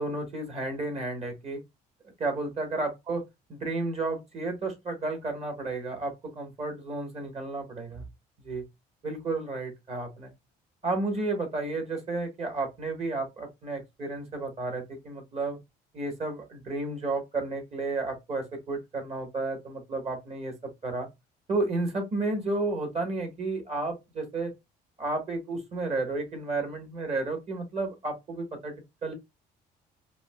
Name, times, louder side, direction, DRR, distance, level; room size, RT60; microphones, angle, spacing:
voice 1, 0.0-1.6 2.2-3.2 3.5-8.0 8.4-8.6 9.0-10.3 10.8-15.6 15.9-20.5 20.8-21.1 21.5-24.5 25.0-28.7 29.0-29.1, right 2 dB, 40° right, 1.2 m, -32 dB
4.9 x 2.2 x 2.2 m
cardioid pair, 110°, 17 cm